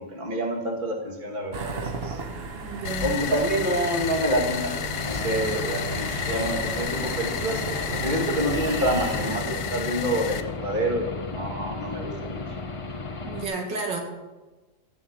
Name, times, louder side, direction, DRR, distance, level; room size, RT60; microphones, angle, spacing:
voice 1, 0.0-2.2 3.0-12.4, right 1 dB, 25° right, 1 dB, 2.1 m, -28 dB
sound 1, 1.5-9.4, right 3 dB, 45° right, 0.9 m, -34 dB
voice 2, 2.6-3.1 13.2-14.0, right 3 dB, 70° right, 1 dB, 2.7 m, -31 dB
sound 2, 2.8-10.4, left 9 dB, 70° left, 1.5 m, -32 dB
Aircraft / Engine, 5.0-13.4, left 3 dB, 50° left, 0.3 m, -35 dB
13.5 x 7.4 x 8.4 m, 1.2 s
omnidirectional pair, 2.0 m